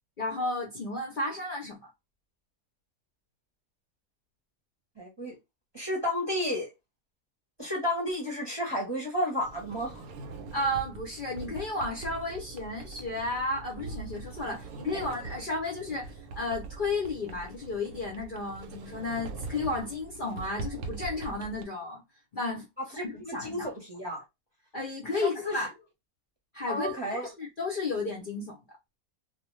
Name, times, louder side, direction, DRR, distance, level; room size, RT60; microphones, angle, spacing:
voice 1, 0.2-1.8 10.5-22.0 22.3-23.7 24.7-25.7 26.5-28.6, left 2 dB, 50° left, 0.6 m, -33 dB
voice 2, 5.0-5.3 5.7-6.7 7.6-10.0 14.9-15.0 22.9-24.2 25.1-25.6 26.7-27.3, left 1 dB, 20° right, 0.8 m, -32 dB
Sliding door, 9.4-21.6, right 3 dB, 85° right, 1.0 m, -42 dB
2.3 x 2.3 x 3.1 m
omnidirectional pair, 1.5 m